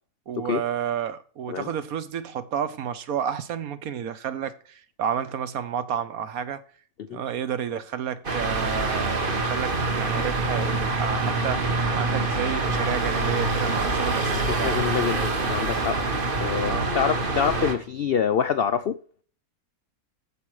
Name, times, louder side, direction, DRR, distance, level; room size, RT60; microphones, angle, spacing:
voice 1, 0.3-6.6 7.1-11.6 11.9-15.1 16.7-16.9, right 8 dB, 70° right, 1.2 m, -31 dB
sound 1, 8.2-17.7, right 2 dB, 35° right, 1.4 m, -25 dB
voice 2, 14.6-16.0 16.4-19.0, left 7 dB, 75° left, 0.5 m, -26 dB
13.5 x 5.2 x 4.8 m
omnidirectional pair, 1.7 m